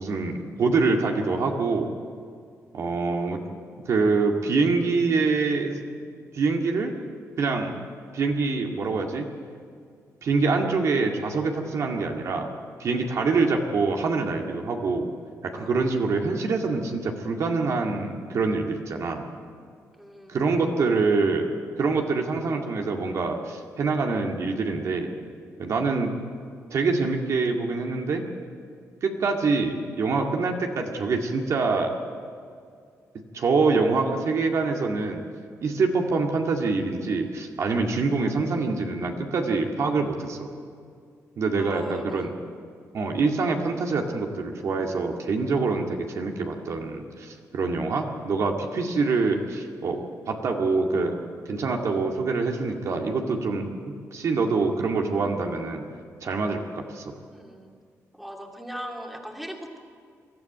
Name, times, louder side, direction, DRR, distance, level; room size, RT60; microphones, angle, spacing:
voice 1, 0.0-1.9 2.7-3.5 3.9-5.8 6.3-6.9 7.4-7.7 8.1-9.3 10.2-12.5 12.8-15.1 15.4-19.2 20.3-21.5 21.8-25.1 25.6-26.1 26.7-28.2 29.0-31.9 33.3-35.2 35.6-40.5 41.4-42.3 42.9-51.2 51.5-55.9 56.2-57.1, right 4 dB, 60° right, 2 dB, 2.1 m, -25 dB
voice 2, 20.0-20.4 41.6-42.3 57.3-57.7 58.1-59.8, equal, ahead, 1 dB, 2.5 m, -39 dB
22.5 x 13.5 x 9.4 m, 2.2 s
cardioid pair, 130°, 6 cm